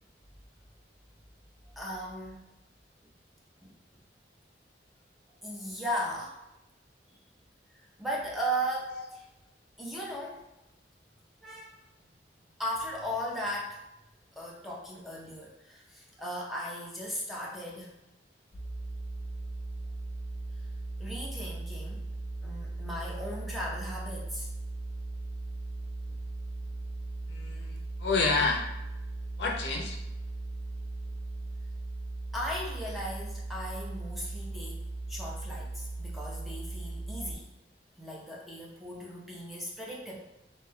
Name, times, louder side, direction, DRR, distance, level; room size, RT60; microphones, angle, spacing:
voice 1, 1.7-2.5 3.6-3.7 5.4-6.4 8.0-9.3 9.8-10.4 11.4-11.8 12.6-13.8 14.4-17.9 21.0-22.1 22.4-24.5 32.3-34.8 35.1-37.5 38.0-40.2, equal, ahead, -5 dB, 0.5 m, -37 dB
sound 1, 18.5-37.4, right 2 dB, 60° right, 1.1 m, -38 dB
voice 2, 27.3-28.6 29.4-30.0, left 4 dB, 65° left, 1 dB, 0.4 m, -29 dB
2.6 x 2.1 x 3.5 m, 0.94 s
head